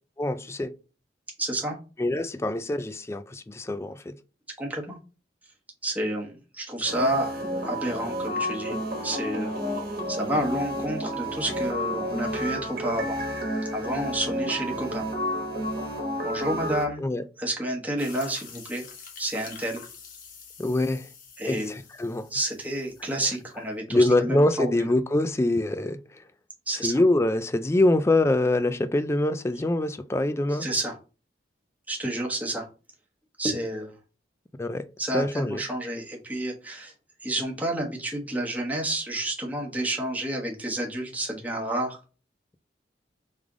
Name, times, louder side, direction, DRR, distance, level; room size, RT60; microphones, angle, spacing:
voice 1, 0.2-0.7 2.0-4.2 17.0-17.2 20.6-21.1 21.4-22.3 23.9-26.2 26.8-30.7 34.6-34.9 35.1-35.6, left 2 dB, 15° left, 0.3 m, -24 dB
voice 2, 1.4-1.8 4.6-5.0 5.8-9.5 10.1-13.2 13.7-15.0 16.2-17.0 17.4-18.8 19.2-19.8 21.4-21.7 22.3-24.9 26.7-27.0 30.5-30.9 31.9-32.7 33.4-33.9 35.0-36.9 37.2-42.0, right 1 dB, 10° right, 1.1 m, -30 dB
sound 1, 6.8-16.8, equal, 55° right, 1.2 m, -30 dB
sound 2, 18.0-23.5, left 5 dB, 50° left, 1.0 m, -47 dB
3.6 x 3.3 x 3.7 m
head